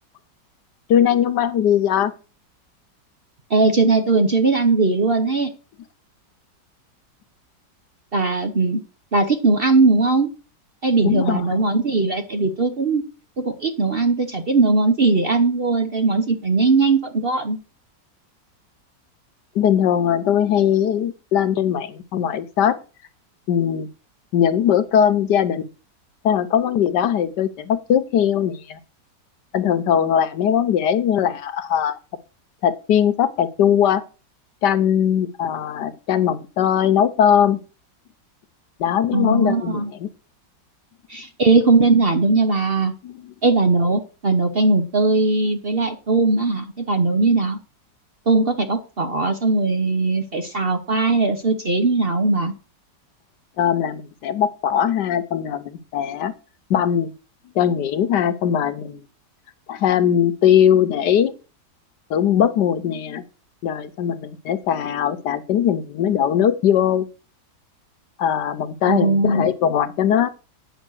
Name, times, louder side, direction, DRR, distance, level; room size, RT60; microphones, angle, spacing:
voice 1, 0.9-2.1 11.0-11.6 19.5-22.8 23.5-23.9 24.3-25.6 26.2-28.8 29.5-32.0 32.6-34.0 34.6-37.6 38.8-40.1 43.0-43.3 53.6-56.3 56.7-57.1 57.5-59.0 59.7-61.3 62.1-63.2 63.6-67.1 68.2-70.3, left 9 dB, 75° left, 12 dB, 1.4 m, -20 dB
voice 2, 3.5-5.5 8.1-8.8 9.1-10.3 10.8-13.0 13.4-17.6 39.1-39.9 41.1-42.9 43.4-47.6 48.3-52.5 68.9-69.5, right 3 dB, 40° right, 7 dB, 1.0 m, -19 dB
9.2 x 6.0 x 6.3 m, 0.33 s
omnidirectional pair, 1.9 m